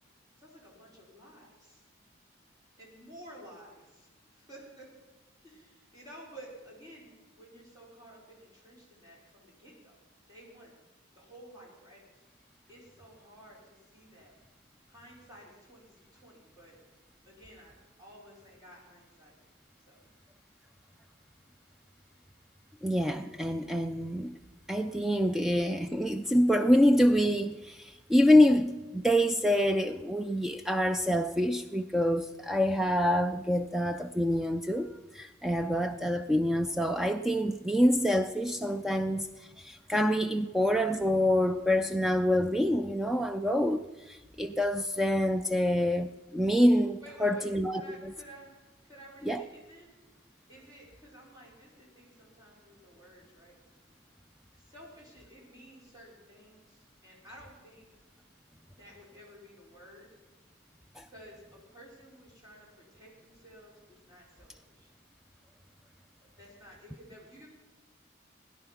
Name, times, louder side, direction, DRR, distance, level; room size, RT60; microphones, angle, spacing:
voice 1, 0.4-1.8 2.8-4.9 5.4-10.0 10.3-10.8 11.1-12.2 12.7-14.3 14.9-16.8 17.2-19.4 19.9-20.0 47.0-48.5 48.8-49.9 50.5-53.6 54.5-57.9 58.6-60.1 61.1-64.9 66.2-67.5, right 1 dB, 20° right, 4.4 m, -53 dB
voice 2, 22.8-24.3 24.7-47.8 49.3-49.4 61.0-61.1, equal, ahead, 0.4 m, -26 dB
17.0 x 10.5 x 5.7 m
head